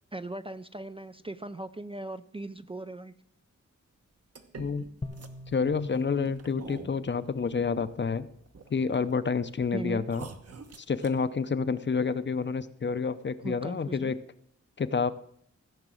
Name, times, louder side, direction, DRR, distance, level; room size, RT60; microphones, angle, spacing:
voice 1, 0.1-3.1 9.7-10.1 13.4-14.1, right 2 dB, 20° right, 11 dB, 0.4 m, -38 dB
sound 1, 4.3-8.1 8.5-9.3 9.6-9.7 10.0-11.2, right 4 dB, 55° right, 1.2 m, -45 dB
voice 2, 4.6-4.9 5.5-8.3 8.7-10.2 10.8-14.2 14.8-15.1, left 5 dB, 40° left, 13 dB, 0.6 m, -29 dB
sound 2, 5.0-8.3, left 2 dB, 20° left, 1.0 m, -45 dB
16.0 x 6.0 x 7.6 m, 0.65 s
wide cardioid pair, 150°, 29 cm